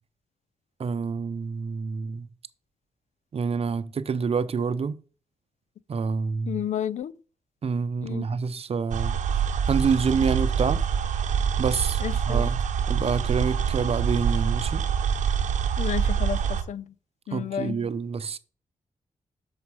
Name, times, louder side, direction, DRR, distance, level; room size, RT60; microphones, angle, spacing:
voice 1, 0.8-2.3 3.3-5.0 5.9-6.6 7.6-10.8 11.6-12.0 12.3-12.6 12.9-14.8 17.3-18.4, right 5 dB, 55° right, 0.6 m, -27 dB
voice 2, 6.5-7.1 8.0-8.3 12.0-12.5 15.8-16.4 16.7-16.9 17.3-17.8, left 9 dB, 80° left, 0.4 m, -31 dB
sound 1, 8.9-16.6, right 7 dB, 85° right, 0.8 m, -25 dB
7.0 x 5.3 x 4.7 m
cardioid pair, 60°, 12 cm